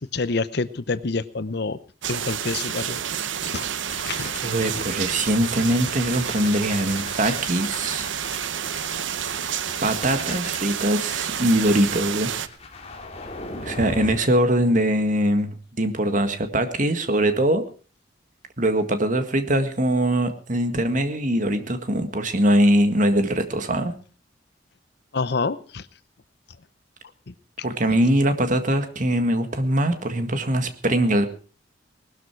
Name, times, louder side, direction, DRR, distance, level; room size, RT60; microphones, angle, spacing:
voice 1, 0.1-1.8 2.1-3.0 3.4-3.7 4.0-4.3 25.1-25.8 27.3-27.4, left 3 dB, 60° left, 15 dB, 0.8 m, -27 dB
sound 1, 2.0-12.5, right 9 dB, 80° right, 0.8 m, -29 dB
sound 2, 3.9-14.2, left 2 dB, 35° left, 2.8 m, -39 dB
voice 2, 4.4-8.1 9.8-12.3 13.6-17.6 18.6-23.9 27.6-31.3, right 1 dB, 45° right, 8 dB, 1.9 m, -22 dB
19.5 x 12.5 x 4.6 m, 0.39 s
head